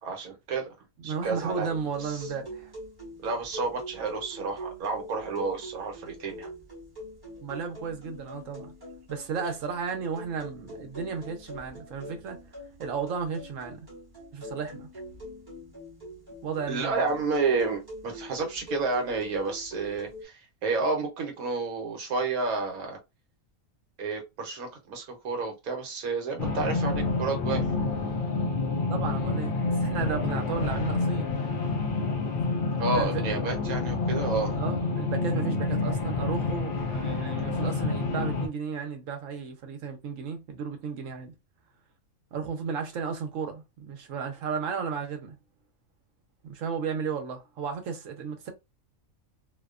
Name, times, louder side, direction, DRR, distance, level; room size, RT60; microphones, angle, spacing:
voice 1, 0.0-0.7 1.0-1.7 2.2-2.3 3.2-6.5 16.7-23.0 24.0-27.7 32.8-34.5, right 4 dB, 85° right, 1.3 m, -30 dB
voice 2, 1.0-2.7 7.4-8.7 9.1-12.4 12.8-13.9 14.3-14.9 16.4-17.0 28.9-31.4 32.9-33.4 34.5-41.3 42.3-45.4 46.4-48.5, right 6 dB, 70° right, 1.1 m, -34 dB
sound 1, 1.1-20.2, equal, 20° right, 0.9 m, -44 dB
sound 2, 26.4-38.5, left 3 dB, 75° left, 0.4 m, -28 dB
2.7 x 2.2 x 2.3 m
omnidirectional pair, 1.5 m